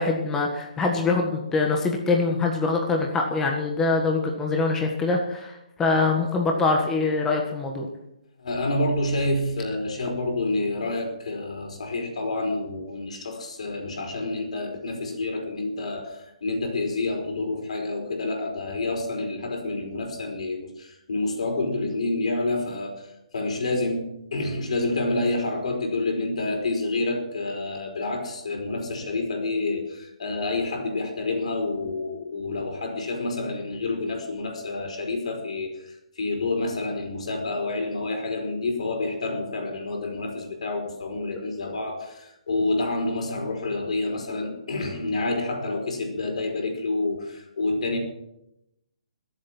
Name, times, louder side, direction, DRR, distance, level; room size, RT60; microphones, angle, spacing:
voice 1, 0.0-7.9, left 3 dB, 10° left, 1 dB, 1.5 m, -24 dB
voice 2, 8.4-48.0, left 2 dB, 70° left, 4 dB, 4.9 m, -28 dB
21.5 x 8.3 x 6.1 m, 0.85 s
hypercardioid pair, 155°, 4 cm